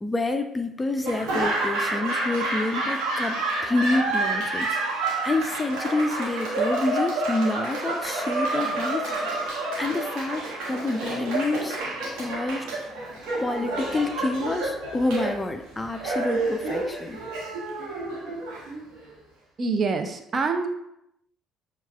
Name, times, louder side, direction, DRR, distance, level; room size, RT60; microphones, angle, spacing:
voice 1, 0.0-11.8 12.1-12.7 13.4-17.2, left 2 dB, 20° left, 7 dB, 0.4 m, -28 dB
Laughter / Applause, 1.0-19.1, right 2 dB, 65° right, 1.1 m, -29 dB
voice 2, 19.6-20.7, right 4 dB, 40° right, 5 dB, 0.6 m, -25 dB
7.0 x 2.4 x 2.3 m, 0.79 s
figure-of-eight pair, 50°, 0 cm